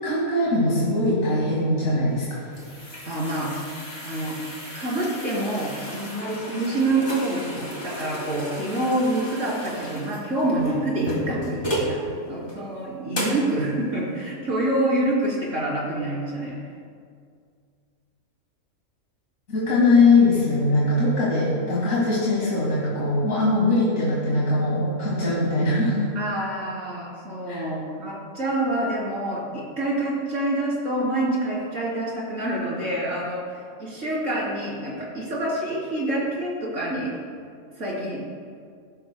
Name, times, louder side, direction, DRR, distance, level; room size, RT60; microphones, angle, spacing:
voice 1, 0.0-2.4 19.5-26.1 27.5-27.7, left 2 dB, 65° left, -7 dB, 2.4 m, -21 dB
sound 1, 2.1-12.0 12.5-12.6 13.1-13.5, equal, 35° left, 2.6 m, -33 dB
voice 2, 3.0-3.5 4.0-4.4 4.8-12.0 12.3-16.6 26.2-37.1 37.8-38.2, right 1 dB, 60° right, -6 dB, 3.6 m, -27 dB
15.5 x 12.5 x 2.2 m, 2.2 s
omnidirectional pair, 1.5 m